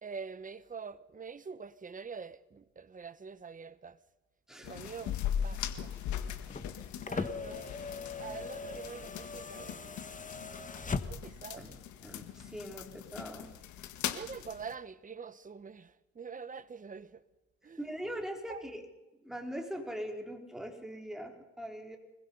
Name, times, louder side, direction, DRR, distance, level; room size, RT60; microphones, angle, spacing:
voice 1, 0.0-4.0 4.6-6.1 7.0-10.1 11.0-11.7 14.1-17.2 17.6-17.8 18.5-18.6, right 5 dB, 30° right, 1.2 m, -45 dB
sound 1, 4.6-14.7, left 9 dB, 80° left, 1.6 m, -40 dB
sound 2, 6.4-11.5 12.7-12.8, left 4 dB, 25° left, 1.5 m, -40 dB
voice 2, 11.6-13.5 17.8-18.8 19.2-22.0, equal, ahead, 4.1 m, -41 dB
25.0 x 20.5 x 5.5 m
cardioid pair, 85°, 29 cm